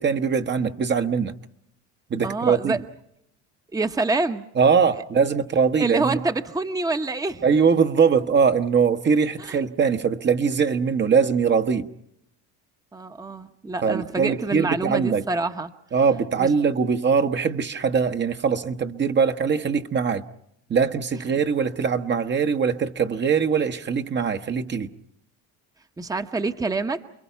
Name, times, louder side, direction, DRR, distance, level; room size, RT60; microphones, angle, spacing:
voice 1, 0.0-1.3 2.1-2.8 4.6-6.2 7.4-11.9 13.8-15.3 15.9-20.2 20.7-24.9, right 6 dB, 30° right, 1.1 m, -22 dB
voice 2, 2.2-2.8 3.7-4.4 5.8-7.4 9.4-9.6 12.9-15.7 16.4-16.5 26.0-27.0, right 3 dB, 10° right, 1.0 m, -26 dB
30.0 x 22.0 x 5.7 m
supercardioid pair, 105°, 34 cm